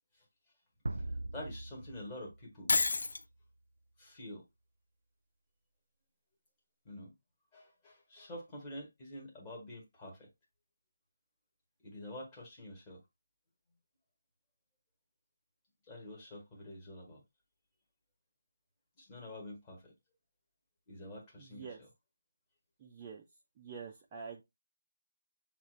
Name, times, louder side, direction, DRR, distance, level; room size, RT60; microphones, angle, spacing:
sound 1, 0.9-3.3, right 2 dB, 80° right, 0.4 m, -41 dB
voice 1, 1.3-2.7 4.0-4.4 6.8-7.1 7.5-10.3 11.8-13.0 15.9-17.2 19.0-19.9 20.9-21.7, left 1 dB, 10° left, 1.2 m, -47 dB
Shatter, 2.7-3.2, left 3 dB, 70° left, 0.5 m, -29 dB
voice 2, 21.4-21.8 22.8-23.2 23.6-24.4, right 6 dB, 15° right, 0.4 m, -46 dB
6.9 x 2.4 x 3.1 m
figure-of-eight pair, 175°, 0 cm